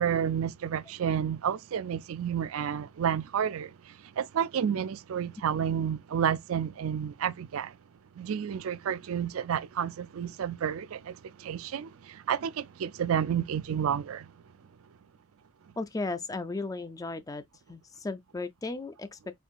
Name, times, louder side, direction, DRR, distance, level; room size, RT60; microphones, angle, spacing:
voice 1, 0.0-7.8 8.2-14.3, right 8 dB, 85° right, 0.4 m, -30 dB
voice 2, 15.8-17.4 17.7-19.4, left 3 dB, 15° left, 0.3 m, -35 dB
4.4 x 3.4 x 2.4 m
head